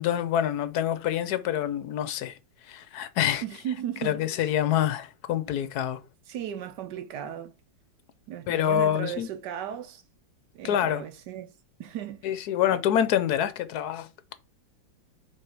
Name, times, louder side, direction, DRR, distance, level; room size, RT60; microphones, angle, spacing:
voice 1, 0.0-2.4 2.7-3.4 4.0-6.0 8.5-9.3 10.6-11.0 12.2-14.1, left 10 dB, 65° left, 1.1 m, -26 dB
voice 2, 3.4-4.2 6.3-7.5 8.3-10.0 10.5-11.5 11.8-12.4 12.7-12.8, right 10 dB, 70° right, 1.2 m, -36 dB
7.6 x 3.3 x 4.7 m
omnidirectional pair, 2.1 m